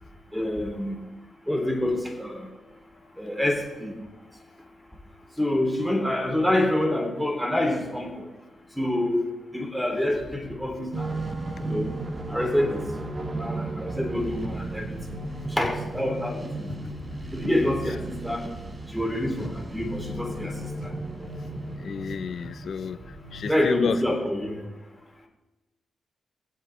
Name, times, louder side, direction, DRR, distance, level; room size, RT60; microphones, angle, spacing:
voice 1, 0.3-1.0 1.5-2.5 3.2-4.0 5.4-8.3 8.8-11.2 11.6-12.0 12.3-12.8 13.3-15.0 15.5-16.7 17.3-18.4 18.9-20.5 20.8-20.9 23.5-24.6, left 1 dB, ahead, 2 dB, 3.2 m, -27 dB
sound 1, 10.9-24.2, right 2 dB, 40° right, 1.4 m, -35 dB
voice 2, 21.8-23.0 23.3-24.0, left 7 dB, 65° left, 13 dB, 0.7 m, -30 dB
21.5 x 8.0 x 3.3 m, 1.1 s
supercardioid pair, 45°, 0 cm